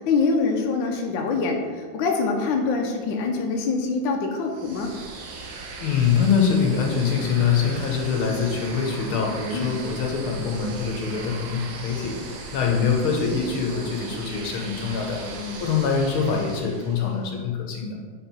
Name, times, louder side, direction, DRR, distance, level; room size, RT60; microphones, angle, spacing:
voice 1, 0.0-4.9 9.5-9.8 15.2-15.7, left 4 dB, 70° left, 2 dB, 1.4 m, -25 dB
sound 1, 4.5-17.2, right 3 dB, 85° right, 1.8 m, -38 dB
voice 2, 5.8-12.2 12.5-15.2 15.6-18.0, left 6 dB, 85° left, 1 dB, 1.8 m, -24 dB
4.8 x 4.5 x 5.4 m, 1.5 s
omnidirectional pair, 2.3 m